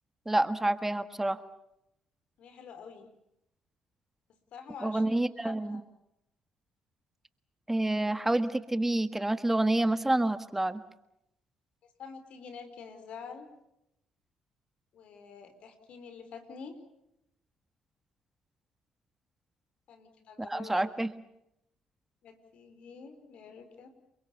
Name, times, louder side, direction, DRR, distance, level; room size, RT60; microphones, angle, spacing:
voice 1, 0.2-1.4 4.8-5.8 7.7-10.8 20.5-21.1, right 1 dB, 15° right, 12 dB, 1.6 m, -28 dB
voice 2, 2.4-3.1 4.5-5.8 12.0-13.5 14.9-16.8 19.9-20.8 22.2-23.9, left 5 dB, 65° left, 9 dB, 4.5 m, -47 dB
29.5 x 23.0 x 7.0 m, 0.82 s
supercardioid pair, 60°, 2 cm